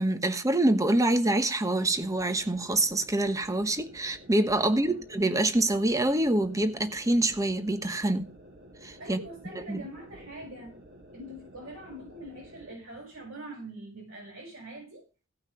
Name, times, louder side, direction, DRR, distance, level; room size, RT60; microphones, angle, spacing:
voice 1, 0.0-8.3 8.8-9.2 9.7-9.8, right 1 dB, 15° right, 1.1 m, -26 dB
sound 1, 1.8-12.8, equal, 55° right, 2.8 m, -52 dB
voice 2, 4.6-5.0 9.0-10.7 11.1-15.0, right 1 dB, 75° right, 6.0 m, -43 dB
16.5 x 5.8 x 5.6 m
head